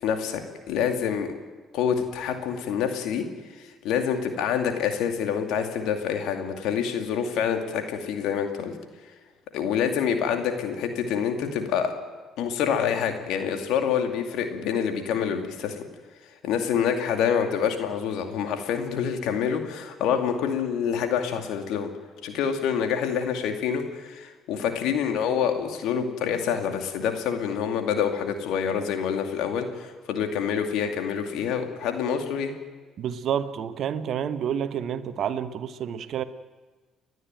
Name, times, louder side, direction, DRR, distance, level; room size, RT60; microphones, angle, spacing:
voice 1, 0.0-0.4 0.7-1.3 1.7-3.3 3.6-8.7 9.5-11.9 12.4-15.8 16.4-21.9 22.2-32.5, left 7 dB, 75° left, 5 dB, 2.4 m, -27 dB
voice 2, 33.0-36.2, right 8 dB, 60° right, 12 dB, 1.1 m, -29 dB
30.0 x 11.0 x 9.1 m, 1.4 s
hypercardioid pair, 60°, 0 cm